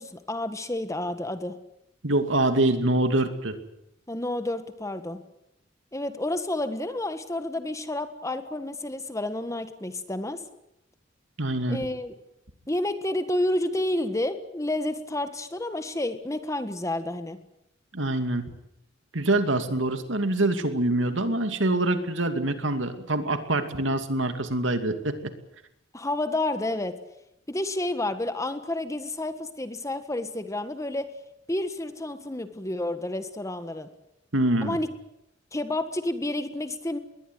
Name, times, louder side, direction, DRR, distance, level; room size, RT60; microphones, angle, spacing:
voice 1, 0.0-1.5 4.1-5.2 5.9-10.4 11.7-12.1 12.7-17.4 25.9-27.0 27.5-31.1 31.5-33.9 34.6-34.9 35.5-37.0, left 1 dB, 15° left, 10 dB, 1.6 m, -30 dB
voice 2, 2.0-3.6 11.4-11.9 17.9-18.4 19.1-25.3 34.3-34.8, right 2 dB, 75° right, 8 dB, 2.5 m, -25 dB
21.5 x 18.5 x 9.5 m, 0.84 s
head